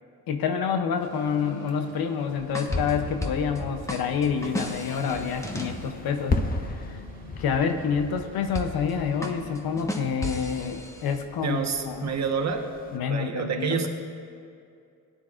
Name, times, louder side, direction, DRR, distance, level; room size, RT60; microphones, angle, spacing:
voice 1, 0.3-6.4 6.7-7.0 7.4-11.6 11.9-12.1 12.9-13.9, left 6 dB, 80° left, 6 dB, 0.8 m, -28 dB
sound 1, 0.9-10.9, equal, 85° right, 1.0 m, -46 dB
sound 2, 2.5-3.6 3.9-5.9 8.5-8.9 9.2-11.2, left 1 dB, 10° left, 1.1 m, -34 dB
sound 3, 2.7-13.0, left 3 dB, 25° left, 0.7 m, -36 dB
voice 2, 11.4-12.7 13.1-13.9, right 6 dB, 50° right, 4 dB, 1.2 m, -28 dB
17.0 x 10.0 x 2.5 m, 2.4 s
cardioid pair, 80°, 36 cm